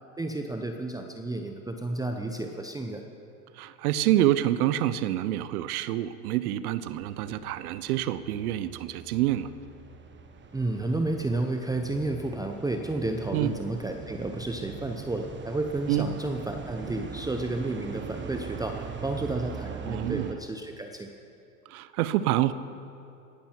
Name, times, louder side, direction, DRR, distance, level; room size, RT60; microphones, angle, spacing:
voice 1, 0.2-3.0 10.5-21.1, right 2 dB, 10° right, 4 dB, 0.8 m, -31 dB
voice 2, 3.5-9.5 13.3-13.6 15.9-16.1 19.9-20.3 21.7-22.5, right 13 dB, 70° right, 15 dB, 0.8 m, -27 dB
sound 1, 6.9-20.3, right 6 dB, 25° right, 1.1 m, -42 dB
18.0 x 11.5 x 4.6 m, 2.6 s
hypercardioid pair, 95°, 46 cm